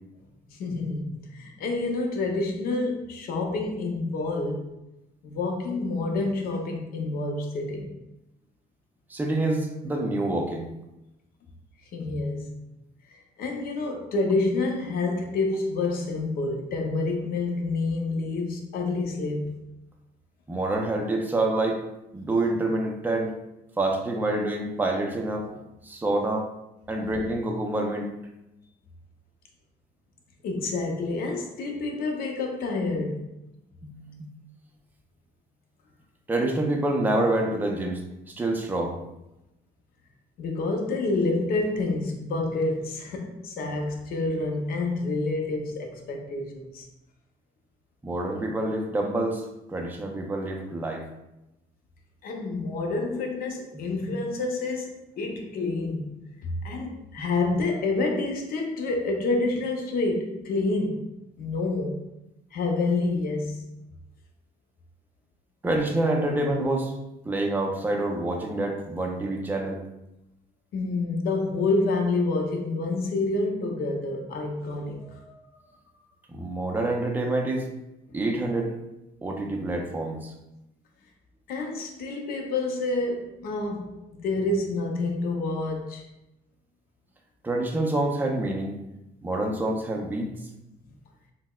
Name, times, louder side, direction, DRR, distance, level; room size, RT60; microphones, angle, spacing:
voice 1, 0.5-4.7 5.2-7.9 11.9-12.5 13.1-19.6 30.4-33.3 40.4-46.9 52.2-56.1 56.4-61.0 61.4-61.9 62.5-63.7 70.7-75.2 78.1-78.2 81.5-86.1, left 3 dB, 60° left, 2 dB, 0.6 m, -28 dB
voice 2, 9.1-10.7 20.5-21.8 22.1-23.3 23.8-26.5 26.9-28.1 33.8-34.2 36.3-38.0 38.4-39.0 48.0-49.4 49.7-51.0 53.7-54.1 57.2-57.5 65.6-66.9 67.2-69.8 76.3-77.7 78.1-78.7 79.2-80.3 87.4-88.8 89.2-90.3, right 2 dB, 10° right, 1 dB, 0.4 m, -27 dB
3.9 x 2.1 x 2.2 m, 0.90 s
cardioid pair, 110°, 17 cm